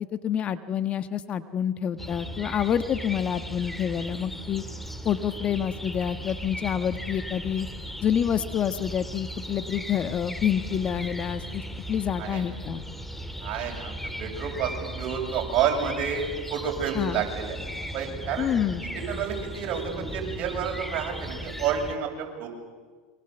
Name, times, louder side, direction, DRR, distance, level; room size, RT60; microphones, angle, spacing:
voice 1, 0.1-4.6 5.0-7.7 8.0-12.8 16.9-17.2 18.4-18.8, left 9 dB, 35° left, 11 dB, 1.4 m, -28 dB
sound 1, 2.0-22.0, equal, 5° left, 2.2 m, -37 dB
voice 2, 13.4-17.6 17.9-18.5 18.9-22.5, right 7 dB, 50° right, 1 dB, 7.5 m, -30 dB
28.5 x 24.5 x 8.1 m, 1.5 s
hypercardioid pair, 105°, 3 cm